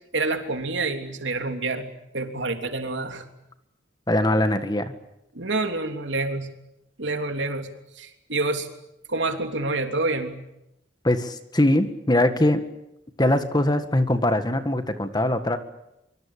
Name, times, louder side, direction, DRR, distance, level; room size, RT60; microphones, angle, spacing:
voice 1, 0.1-1.9 2.1-3.2 5.3-6.5 7.0-7.7 8.0-8.7 9.1-10.4, right 3 dB, 85° right, 5 dB, 3.2 m, -27 dB
voice 2, 4.1-4.9 11.0-12.7 13.2-15.6, left 1 dB, 25° left, 9 dB, 1.8 m, -22 dB
24.5 x 24.0 x 8.6 m, 0.87 s
head